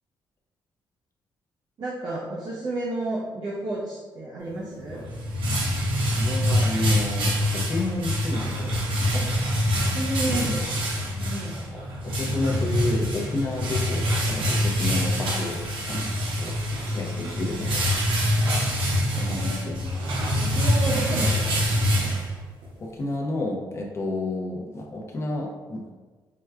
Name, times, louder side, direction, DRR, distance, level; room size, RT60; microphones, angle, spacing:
voice 1, 1.8-5.0 9.1-9.3 9.7-10.6 11.2-11.6 17.2-17.5 19.1-19.9 20.4-22.2, right 1 dB, 50° right, -6 dB, 0.6 m, -32 dB
sound 1, 4.8-22.7, equal, 80° right, 0.8 m, -25 dB
voice 2, 6.2-8.8 10.3-10.5 11.7-16.5 16.8-17.9 18.3-18.6 19.1-19.7 22.8-25.8, left 2 dB, 30° left, 0 dB, 0.5 m, -31 dB
4.5 x 2.2 x 2.3 m, 1.3 s
cardioid pair, 130°, 9 cm